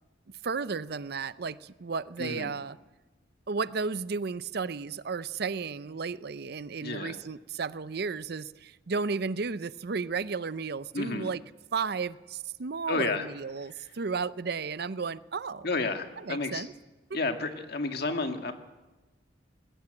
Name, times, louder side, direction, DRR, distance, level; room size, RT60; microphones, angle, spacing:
voice 1, 0.4-2.8 3.5-11.4 11.7-15.7 16.3-16.7, right 5 dB, 60° right, 0.6 m, -33 dB
voice 2, 2.2-2.5 6.8-7.2 10.9-11.3 12.9-13.3 15.6-16.7 17.1-18.5, left 3 dB, 60° left, 1.9 m, -31 dB
20.0 x 15.5 x 8.8 m
head